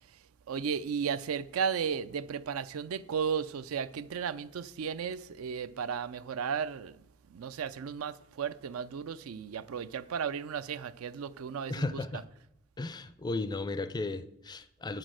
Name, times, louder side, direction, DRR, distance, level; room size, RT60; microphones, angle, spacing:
voice 1, 0.5-7.0 7.3-12.2, right 7 dB, 75° right, 0.4 m, -34 dB
voice 2, 11.7-12.2 12.8-15.0, left 2 dB, 20° left, 0.4 m, -35 dB
7.1 x 6.1 x 6.3 m
head